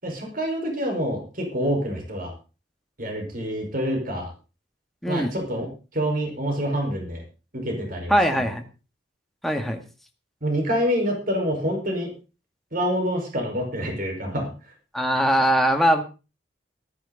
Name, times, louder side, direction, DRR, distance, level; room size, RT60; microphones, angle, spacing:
voice 1, 0.0-2.3 3.0-4.3 5.1-7.2 7.5-8.2 10.4-12.1 12.7-14.5, equal, 50° right, 3 dB, 5.3 m, -26 dB
voice 2, 5.0-5.3 8.1-8.6 9.4-9.8 14.9-16.0, equal, ahead, 3 dB, 1.9 m, -21 dB
14.0 x 13.5 x 4.2 m, 0.32 s
head